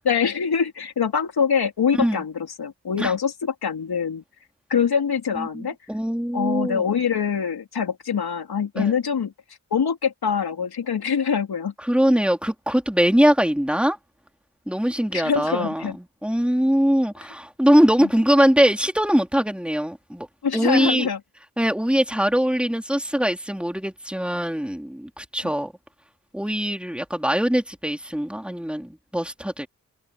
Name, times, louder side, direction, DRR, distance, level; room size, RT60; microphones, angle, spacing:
voice 1, 0.1-4.2 4.7-5.8 6.3-9.3 9.7-11.7 15.1-16.0 18.0-18.1 20.4-21.2, left 6 dB, 90° left, 3.6 m, -24 dB
voice 2, 5.4-6.9 8.8-8.9 11.8-14.0 14.7-15.8 16.2-20.3 20.5-21.1 21.6-25.7 26.3-29.7, equal, 5° right, 3.6 m, -22 dB
cardioid pair, 40°, 37 cm